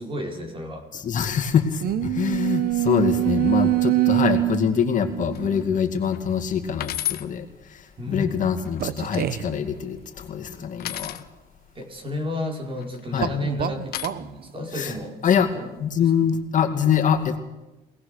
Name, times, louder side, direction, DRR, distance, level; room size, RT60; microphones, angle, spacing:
voice 1, 0.0-1.0 8.0-8.5 11.7-16.1, left 2 dB, 30° right, 2 dB, 4.7 m, -32 dB
voice 2, 0.9-11.2 13.1-13.3 14.7-14.9 15.2-15.5 15.8-17.4, left 8 dB, 50° left, 5 dB, 2.4 m, -24 dB
sound 1, 1.8-5.8 6.7-6.8 8.8-9.6 13.2-14.3, right 15 dB, 60° right, 1.0 m, -24 dB
sound 2, 5.3-5.6 6.1-6.2 6.8-7.3 8.4-9.1 10.8-11.2 12.7-13.2 13.9-14.1, left 12 dB, 65° left, 1.3 m, -32 dB
24.5 x 18.0 x 6.7 m, 1.0 s
cardioid pair, 110°, 17 cm